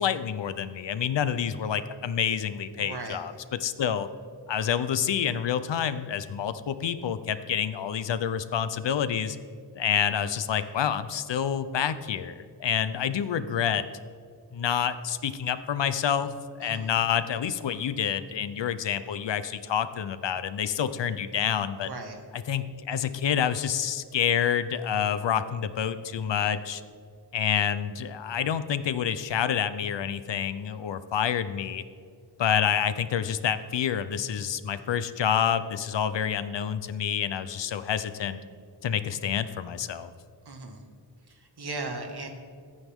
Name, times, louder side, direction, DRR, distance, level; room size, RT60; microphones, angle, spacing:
voice 1, 0.0-3.3 3.6-4.1 4.5-9.4 9.7-13.8 14.5-21.9 22.3-26.8 27.3-31.8 32.4-38.4 38.8-40.1, left 8 dB, 85° left, 12 dB, 0.8 m, -28 dB
voice 2, 2.8-3.2 16.6-16.9 21.8-22.2 40.5-40.9 41.3-42.3, right 3 dB, 65° right, 3 dB, 2.0 m, -37 dB
25.0 x 9.6 x 3.7 m, 2.2 s
wide cardioid pair, 130°, 42 cm